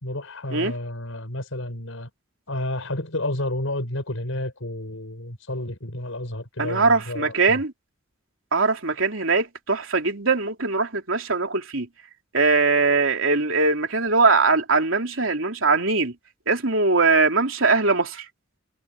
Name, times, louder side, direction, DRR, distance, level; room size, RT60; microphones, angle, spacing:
voice 1, 0.0-2.1 2.5-7.6, left 1 dB, 80° left, 5.8 m, -31 dB
voice 2, 6.6-7.7 8.5-11.9 12.3-16.1 16.5-18.3, right 3 dB, 75° right, 3.5 m, -21 dB
head